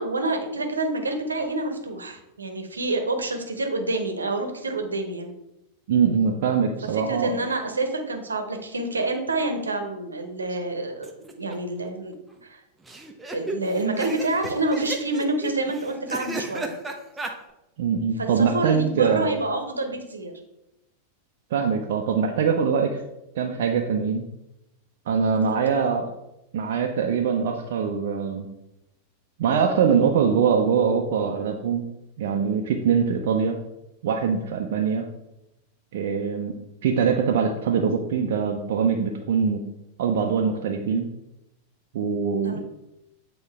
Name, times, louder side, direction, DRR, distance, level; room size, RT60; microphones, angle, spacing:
voice 1, 0.0-5.3 6.9-12.1 12.4-12.6 13.3-16.7 18.2-20.3 25.5-25.8 42.4-42.6, right 2 dB, 75° right, 5 dB, 0.9 m, -28 dB
voice 2, 5.9-7.3 17.8-19.3 21.5-23.0 23.4-24.2 25.1-26.1 26.5-28.5 29.4-31.8 32.2-33.6 34.0-35.1 35.9-36.5 36.8-39.6 40.0-41.1 41.9-42.6, right 6 dB, 55° right, 2 dB, 0.6 m, -23 dB
sound 1, 11.0-11.5 11.8-11.9 12.1-12.2 12.9-17.3, right 2 dB, 10° right, 0.8 m, -34 dB
8.1 x 3.9 x 3.4 m, 0.90 s
figure-of-eight pair, 90°, 0 cm